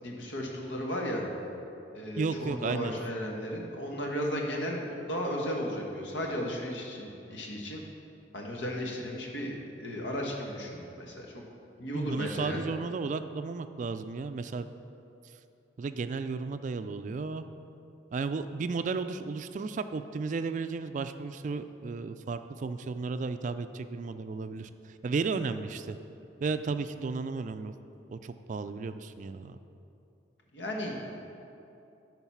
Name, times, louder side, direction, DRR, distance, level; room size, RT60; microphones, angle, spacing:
voice 1, 0.0-1.2 1.9-7.8 8.3-11.4 11.8-12.6 30.5-31.2, equal, 85° left, -1 dB, 1.4 m, -35 dB
voice 2, 2.2-2.9 11.9-14.7 15.8-17.5 18.1-26.0 26.4-27.7 28.1-29.6, right 4 dB, 45° right, 10 dB, 0.3 m, -34 dB
12.0 x 4.0 x 5.7 m, 2.8 s
head